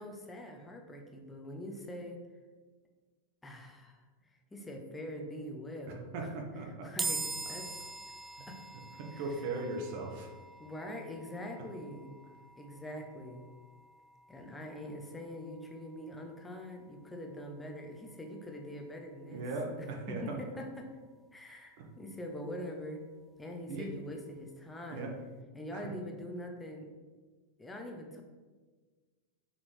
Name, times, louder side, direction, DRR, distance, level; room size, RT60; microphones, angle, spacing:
voice 1, 0.0-2.2 3.4-6.4 6.7-7.2 7.5-7.9 8.5-8.6 9.1-9.4 10.6-12.1 12.6-13.5 14.3-19.4 19.8-20.9 21.3-23.0 23.4-25.1 25.5-26.9 27.6-28.2, left 1 dB, 10° left, 2 dB, 0.9 m, -44 dB
voice 2, 6.1-6.9 8.4-8.5 9.0-10.3 19.3-20.4 21.8-21.9 23.7-23.9 24.9-25.1 25.7-25.9, right 3 dB, 45° right, 2 dB, 1.1 m, -38 dB
sound 1, 7.0-20.3, right 3 dB, 15° right, 0.4 m, -45 dB
6.8 x 4.3 x 3.3 m, 1.4 s
figure-of-eight pair, 90°, 0 cm